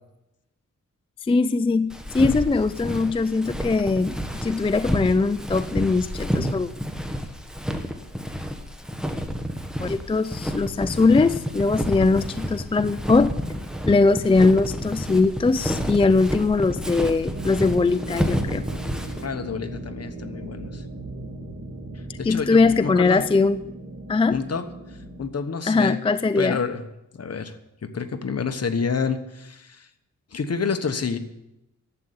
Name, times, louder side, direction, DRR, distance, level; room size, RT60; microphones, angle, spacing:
voice 1, 1.2-6.7 9.8-13.3 13.9-18.6 22.1-23.6 24.1-24.4 25.7-26.6, left 3 dB, 20° left, 13 dB, 0.4 m, -21 dB
Walk footsteps, 1.9-19.2, equal, ahead, 1.3 m, -30 dB
sound 1, 17.3-25.2, right 2 dB, 40° right, 2.4 m, -37 dB
voice 2, 19.2-20.8 22.2-23.2 24.3-24.6 25.2-26.0 26.4-26.8 27.1-27.6 27.8-29.9 30.3-31.2, left 5 dB, 50° left, 8 dB, 1.2 m, -28 dB
11.5 x 7.9 x 8.5 m, 0.89 s
wide cardioid pair, 90°, 32 cm